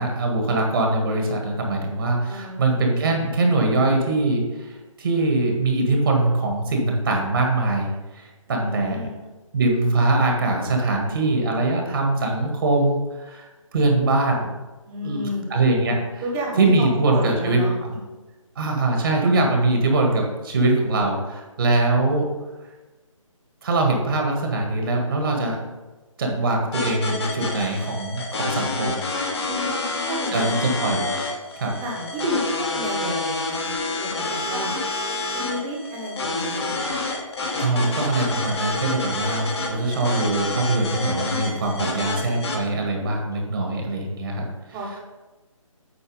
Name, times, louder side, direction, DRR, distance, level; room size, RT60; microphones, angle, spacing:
voice 1, 0.0-9.0 9.5-14.6 15.0-16.2 16.6-17.9 18.5-22.3 23.6-25.6 26.2-29.0 30.3-31.1 31.5-31.8 37.6-44.4, right 2 dB, 40° right, 1 dB, 1.6 m, -22 dB
voice 2, 2.3-2.7 8.5-9.1 14.9-15.5 16.2-17.7 29.4-30.8 31.8-34.8 35.3-37.0 44.7-45.0, equal, 15° right, -1 dB, 1.2 m, -31 dB
sound 1, 26.7-42.6, left 3 dB, 50° left, 1.5 m, -28 dB
8.3 x 4.6 x 5.1 m, 1.2 s
figure-of-eight pair, 155°, 17 cm